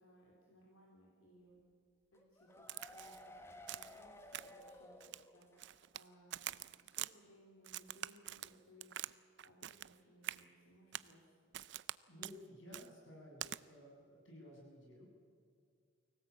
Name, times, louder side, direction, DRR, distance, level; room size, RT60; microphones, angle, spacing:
voice 1, 0.0-1.6 2.1-5.0 5.3-9.2 9.4-11.5, equal, 85° left, -2 dB, 3.7 m, -64 dB
sound 1, 2.1-5.8 6.1-6.2 6.5-6.6, left 1 dB, 10° left, 1.5 m, -56 dB
Crack, 2.7-3.2 3.7-4.0 4.3-4.7 5.0-6.0 6.3-7.1 7.6-9.1 9.4-9.9 10.2-10.4 10.9-11.1 11.5-12.0 12.2-12.4 12.7-12.9 13.4-13.6, right 13 dB, 55° right, 0.5 m, -45 dB
voice 2, 12.1-15.1, left 1 dB, 65° left, -2 dB, 7.8 m, -55 dB
24.0 x 17.5 x 8.4 m, 2.2 s
head